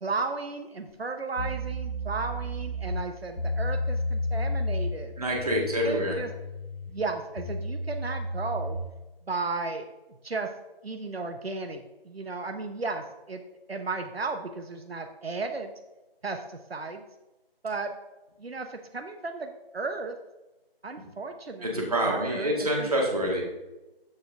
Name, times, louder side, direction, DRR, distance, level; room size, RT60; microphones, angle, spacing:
voice 1, 0.0-5.1 5.6-6.3 6.9-8.8 9.3-9.9 10.2-10.5 10.8-13.4 13.7-15.7 16.2-17.0 17.6-17.9 18.4-20.2 20.8-22.9 23.2-23.4, right 3 dB, 85° right, 5 dB, 0.9 m, -34 dB
sound 1, 0.9-1.0 1.4-8.9, left 1 dB, 85° left, 1.5 m, -32 dB
voice 2, 5.2-6.2 21.6-23.4, equal, 40° right, -1 dB, 1.7 m, -27 dB
13.0 x 4.4 x 3.5 m, 1.0 s
figure-of-eight pair, 175°, 30 cm